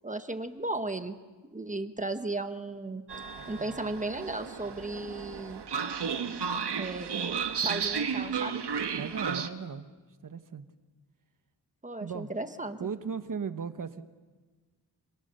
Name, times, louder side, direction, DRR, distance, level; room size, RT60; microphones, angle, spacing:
voice 1, 0.0-1.2 1.5-3.0 3.5-5.6 6.8-8.6 11.8-12.8, right 2 dB, 20° right, 8 dB, 1.2 m, -35 dB
Train, 3.1-9.5, right 6 dB, 80° right, 1.6 m, -33 dB
voice 2, 3.4-4.0 9.0-9.9 10.2-10.7 12.0-12.3 12.8-14.0, right 6 dB, 50° right, 9 dB, 1.3 m, -37 dB
29.0 x 27.5 x 6.8 m, 1.3 s
wide cardioid pair, 160°, 40 cm